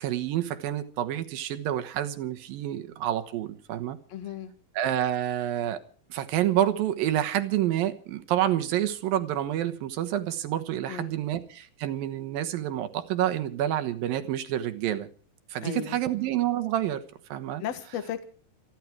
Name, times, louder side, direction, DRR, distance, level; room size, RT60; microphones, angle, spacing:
voice 1, 0.0-4.0 4.8-5.8 6.1-15.1 15.5-17.0 17.3-17.6, right 12 dB, 85° right, 9 dB, 3.0 m, -28 dB
voice 2, 4.1-4.5 10.9-11.1 15.6-16.0 17.6-18.3, left 9 dB, 55° left, 9 dB, 2.5 m, -35 dB
28.0 x 11.0 x 4.7 m, 0.43 s
omnidirectional pair, 4.0 m